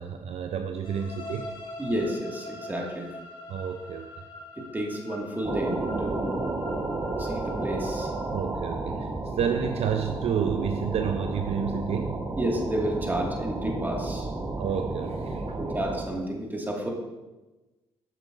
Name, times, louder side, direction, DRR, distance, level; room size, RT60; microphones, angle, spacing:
voice 1, 0.0-1.5 3.5-4.1 8.3-12.2 14.6-15.6, right 7 dB, 60° right, 6 dB, 0.4 m, -30 dB
sound 1, 0.8-8.6, left 2 dB, 45° left, 1.9 m, -44 dB
voice 2, 1.8-3.1 4.6-6.4 7.2-8.1 12.4-14.3 15.6-16.9, right 1 dB, 15° right, 0 dB, 1.8 m, -31 dB
sound 2, 5.4-16.1, right 2 dB, 30° right, 1.0 m, -32 dB
7.6 x 6.5 x 2.5 m, 1.1 s
supercardioid pair, 55°, 12 cm